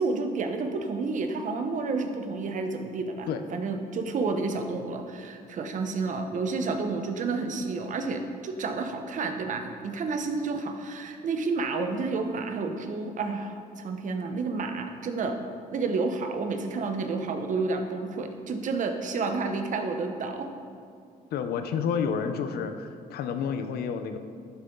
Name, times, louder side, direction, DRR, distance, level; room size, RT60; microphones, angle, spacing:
voice 1, 0.0-15.4 15.7-20.5, right 4 dB, 55° right, 6 dB, 1.1 m, -30 dB
voice 2, 21.3-24.2, left 6 dB, 85° left, 8 dB, 0.8 m, -30 dB
11.5 x 9.8 x 3.9 m, 2.4 s
cardioid pair, 120°, 16 cm